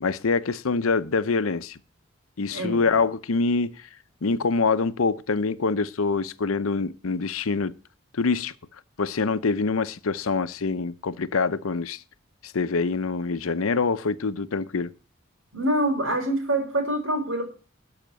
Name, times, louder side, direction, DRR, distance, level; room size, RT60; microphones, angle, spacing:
voice 1, 0.0-1.8 2.4-3.7 4.2-7.7 8.1-8.5 9.0-12.0 12.4-14.9, left 4 dB, 85° left, 0.7 m, -25 dB
voice 2, 2.5-2.8 15.5-17.5, right 1 dB, 70° right, 4.0 m, -25 dB
12.0 x 5.8 x 7.4 m
head